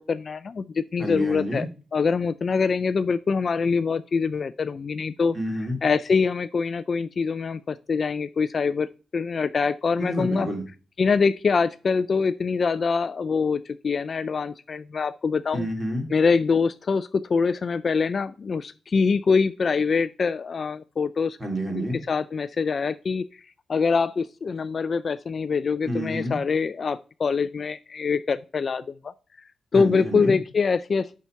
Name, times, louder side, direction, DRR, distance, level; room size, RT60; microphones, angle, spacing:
voice 1, 0.0-1.7 1.9-5.4 5.8-8.9 9.1-10.5 11.0-15.7 16.1-21.4 21.7-23.4 23.7-29.1 29.7-31.1, left 5 dB, 35° left, 13 dB, 0.3 m, -24 dB
voice 2, 1.0-1.6 5.3-5.8 10.0-10.6 15.5-16.1 21.4-22.0 25.8-26.4 29.7-30.3, equal, 20° right, 2 dB, 2.6 m, -29 dB
8.4 x 5.8 x 4.4 m, 0.34 s
wide cardioid pair, 165°, 0 cm